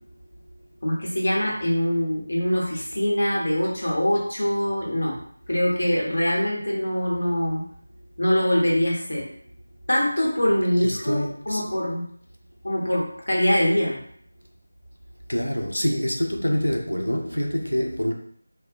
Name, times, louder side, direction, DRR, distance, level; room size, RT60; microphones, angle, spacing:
voice 1, 0.8-5.1 5.5-7.6 8.2-9.2 9.9-11.2 11.5-12.0 12.6-13.9, equal, 60° left, 0.9 m, -23 dB
voice 2, 10.8-11.6 15.3-18.1, equal, 90° left, 0.4 m, -26 dB
2.3 x 2.1 x 2.6 m
figure-of-eight pair, 165°, 0 cm